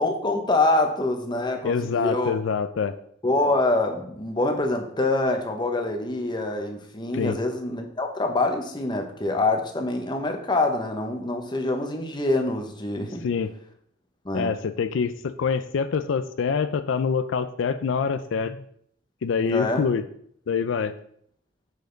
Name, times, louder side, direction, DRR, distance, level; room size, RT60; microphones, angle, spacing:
voice 1, 0.0-2.3 3.2-13.3 14.2-14.5 19.4-19.9, left 2 dB, 25° left, 4 dB, 0.9 m, -25 dB
voice 2, 1.6-2.9 7.1-7.4 13.2-13.5 14.3-18.6 19.2-20.0 20.5-20.9, left 6 dB, 85° left, 11 dB, 0.4 m, -25 dB
6.4 x 5.3 x 3.9 m, 0.65 s
head